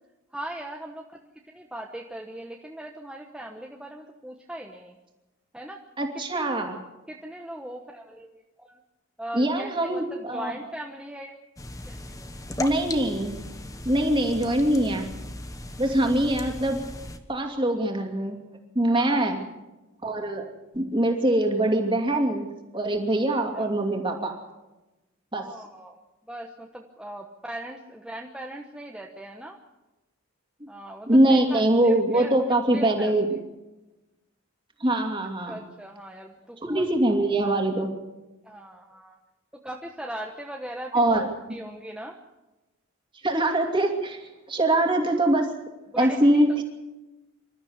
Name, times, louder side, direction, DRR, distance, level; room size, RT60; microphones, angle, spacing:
voice 1, 0.3-1.2 1.5-5.0 5.5-5.8 6.3-6.5 6.8-8.8 9.2-11.3 11.9-12.3 18.9-19.2 23.5-23.7 25.3-26.0 26.3-29.6 30.7-32.3 32.7-33.1 35.5-36.8 38.4-39.2 39.5-42.2 45.9-46.4, right 1 dB, 5° right, 0 dB, 1.1 m, -39 dB
voice 2, 6.0-6.8 9.3-10.5 12.6-13.4 13.8-15.1 15.8-16.8 17.3-18.4 18.7-19.4 20.0-20.4 20.7-22.5 22.7-24.3 25.3-25.4 31.1-33.3 34.8-35.6 36.6-37.9 40.9-41.3 43.2-45.5 46.0-46.6, right 1 dB, 25° right, 3 dB, 2.7 m, -23 dB
sound 1, 11.6-17.2, left 1 dB, 15° left, 1.2 m, -37 dB
26.5 x 13.0 x 8.1 m, 1.1 s
head